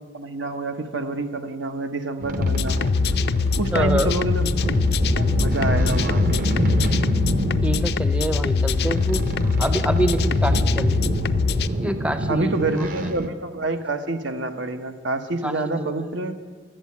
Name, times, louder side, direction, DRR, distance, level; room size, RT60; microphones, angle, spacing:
voice 1, 0.1-2.9 3.6-4.6 5.2-6.5 12.3-16.3, right 2 dB, 90° right, 7 dB, 1.0 m, -27 dB
sound 1, 2.2-13.3, right 1 dB, 45° right, 0.7 m, -28 dB
sound 2, 2.4-11.7, left 4 dB, 60° left, 0.4 m, -23 dB
voice 2, 3.7-4.1 7.6-9.2 9.5-11.2 11.8-12.9 15.4-15.9, right 1 dB, 5° right, 9 dB, 0.5 m, -26 dB
12.5 x 7.5 x 8.4 m, 1.5 s
head